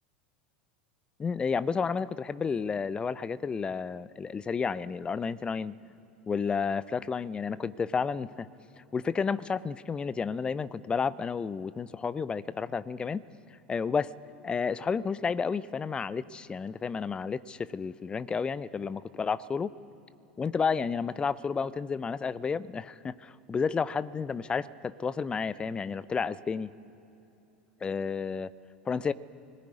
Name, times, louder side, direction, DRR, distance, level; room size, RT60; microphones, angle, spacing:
voice 1, 1.2-5.7 6.3-8.5 8.9-13.2 13.7-14.1 14.4-19.7 20.4-26.7 27.8-28.5 28.9-29.1, left 5 dB, 20° left, 17 dB, 0.6 m, -31 dB
22.0 x 19.0 x 9.4 m, 2.9 s
figure-of-eight pair, 80°, 5 cm